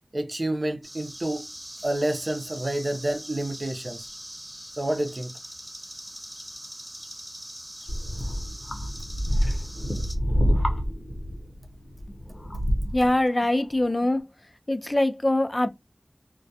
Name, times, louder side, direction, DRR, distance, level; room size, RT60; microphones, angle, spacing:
voice 1, 0.1-1.5 1.8-4.1 4.8-5.3, right 1 dB, 60° right, 0.6 m, -28 dB
sound 1, 0.8-10.1, right 1 dB, 20° right, 1.0 m, -42 dB
sound 2, 7.9-13.2 13.9-14.0, equal, 55° left, 0.8 m, -27 dB
voice 2, 12.6-14.2 14.7-15.7, left 1 dB, 40° left, 0.4 m, -23 dB
2.2 x 2.2 x 2.7 m
wide cardioid pair, 40°, 0 cm